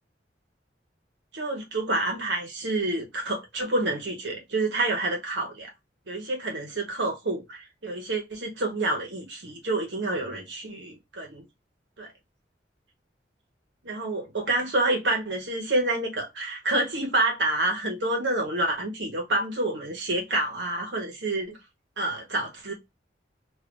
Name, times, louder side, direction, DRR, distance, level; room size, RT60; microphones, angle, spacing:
voice 1, 1.3-5.7 6.1-11.4 12.0-12.1 13.8-21.6 22.0-22.7, right 2 dB, 85° right, 1.3 m, -28 dB
3.2 x 2.8 x 2.6 m
head